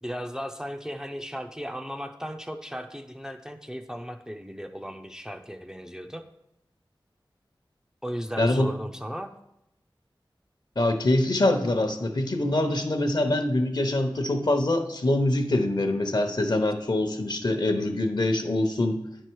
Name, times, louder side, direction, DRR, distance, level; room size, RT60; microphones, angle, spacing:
voice 1, 0.0-6.2 8.0-9.3, equal, 5° right, 5 dB, 0.5 m, -36 dB
voice 2, 8.4-8.7 10.8-19.0, left 1 dB, 55° left, 6 dB, 0.9 m, -24 dB
9.7 x 4.5 x 4.6 m, 0.84 s
wide cardioid pair, 65°, 9 cm